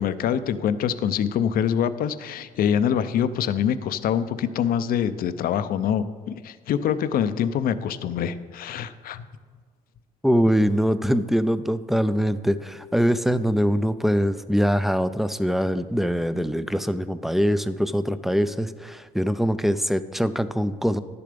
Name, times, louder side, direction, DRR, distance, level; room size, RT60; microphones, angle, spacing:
voice 1, 0.0-9.2, left 8 dB, 60° left, 13 dB, 0.5 m, -25 dB
voice 2, 10.2-21.0, equal, ahead, 13 dB, 0.4 m, -23 dB
11.0 x 6.8 x 5.1 m, 1.5 s
cardioid pair, 110°, 17 cm